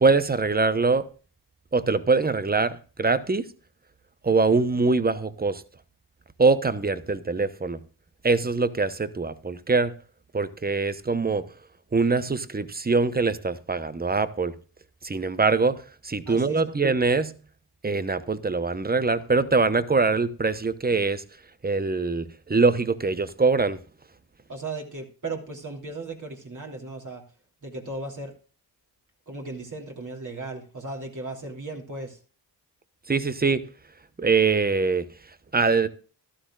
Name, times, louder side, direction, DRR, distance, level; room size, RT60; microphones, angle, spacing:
voice 1, 0.0-1.1 1.7-3.4 4.2-5.6 6.4-7.8 8.2-9.9 10.3-11.5 11.9-14.5 15.0-17.3 17.8-21.2 21.6-23.8 33.1-33.6 34.2-35.1 35.5-35.9, right 4 dB, 20° right, 0.9 m, -23 dB
voice 2, 16.2-16.7 24.5-27.2 27.6-28.3 29.3-32.2, right 2 dB, 45° right, 3.2 m, -36 dB
14.5 x 12.5 x 2.4 m
cardioid pair, 55°, 43 cm